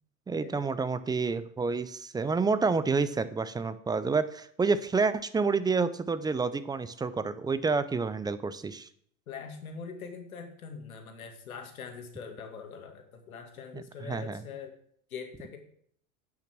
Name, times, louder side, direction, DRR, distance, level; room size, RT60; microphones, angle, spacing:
voice 1, 0.3-8.9 13.7-14.4, right 4 dB, 10° right, 14 dB, 0.4 m, -29 dB
voice 2, 9.3-14.7 15.1-15.6, left 6 dB, 90° left, 4 dB, 2.1 m, -43 dB
10.5 x 6.1 x 6.0 m, 0.64 s
hypercardioid pair, 95°, 41 cm